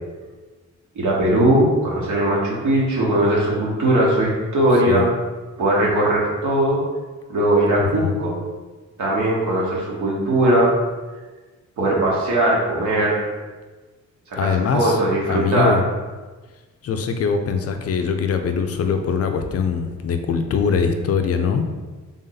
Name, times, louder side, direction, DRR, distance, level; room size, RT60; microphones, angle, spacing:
voice 1, 0.9-5.1 5.6-6.8 7.3-8.4 9.0-10.7 11.8-13.2 14.3-15.8, right 1 dB, 70° right, -4 dB, 1.3 m, -19 dB
voice 2, 7.8-8.2 14.3-15.0 15.3-15.8 16.8-21.6, left 6 dB, 50° left, 6 dB, 0.4 m, -22 dB
3.6 x 2.6 x 3.9 m, 1.3 s
cardioid pair, 85°, 31 cm